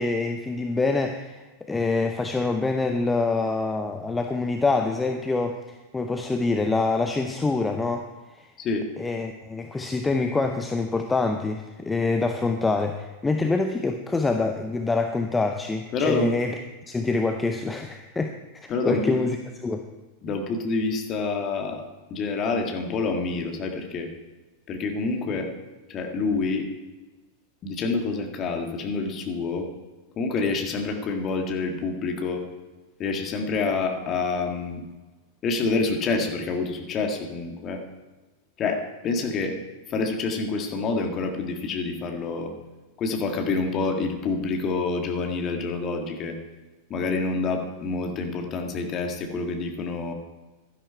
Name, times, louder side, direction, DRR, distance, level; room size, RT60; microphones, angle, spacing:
voice 1, 0.0-8.5 9.0-19.9, left 3 dB, 10° left, 6 dB, 0.7 m, -26 dB
voice 2, 15.9-16.3 18.7-19.2 20.2-21.8 22.1-24.1 24.7-25.5 25.9-26.7 27.6-29.7 30.2-32.4 33.0-34.8 35.4-37.8 38.6-39.6 39.9-42.5 43.0-46.4 46.9-50.1, left 4 dB, 30° left, 3 dB, 1.8 m, -27 dB
12.0 x 11.0 x 4.6 m, 1.2 s
figure-of-eight pair, 90°, 0 cm